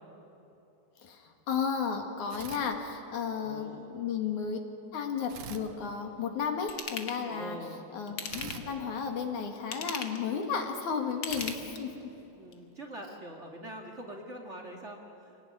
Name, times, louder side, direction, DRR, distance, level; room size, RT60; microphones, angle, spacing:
voice 1, 1.0-4.6 4.9-7.6 7.9-12.1, left 6 dB, 80° left, 4 dB, 3.6 m, -33 dB
sound 1, 2.3-3.4 5.3-6.7 8.3-10.0 11.3-12.8, right 7 dB, 90° right, 2.8 m, -47 dB
voice 2, 3.4-4.0 7.3-7.9 12.4-15.4, right 1 dB, 25° right, 2 dB, 2.3 m, -44 dB
Ratchet pawl / Tools, 6.7-7.2 8.1-8.8 9.6-10.3 11.1-12.0 12.5-12.6, left 6 dB, 50° left, 2.2 m, -38 dB
26.5 x 18.0 x 9.8 m, 2.9 s
omnidirectional pair, 3.4 m